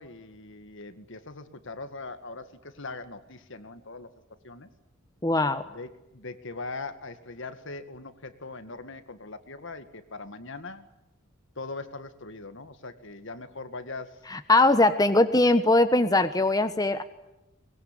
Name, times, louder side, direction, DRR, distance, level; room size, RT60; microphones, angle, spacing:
voice 1, 0.0-4.1 4.4-4.7 5.7-10.9 11.6-14.2, left 3 dB, 65° left, 10 dB, 2.1 m, -41 dB
voice 2, 5.2-5.6 14.3-17.0, left 2 dB, 20° left, 9 dB, 1.1 m, -21 dB
23.0 x 21.5 x 10.0 m, 0.90 s
head